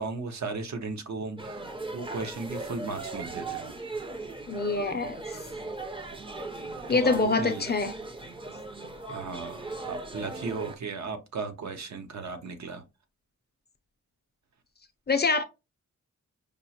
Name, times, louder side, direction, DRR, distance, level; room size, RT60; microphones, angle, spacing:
voice 1, 0.0-1.6 1.9-3.7 6.9-7.6 9.1-12.8, right 4 dB, 65° right, 0.8 m, -36 dB
sound 1, 1.4-10.8, right 2 dB, 15° right, 0.5 m, -38 dB
voice 2, 4.5-5.4 6.9-7.9 15.1-15.4, left 4 dB, 35° left, 0.5 m, -25 dB
5.1 x 2.0 x 2.8 m
wide cardioid pair, 125°, 30 cm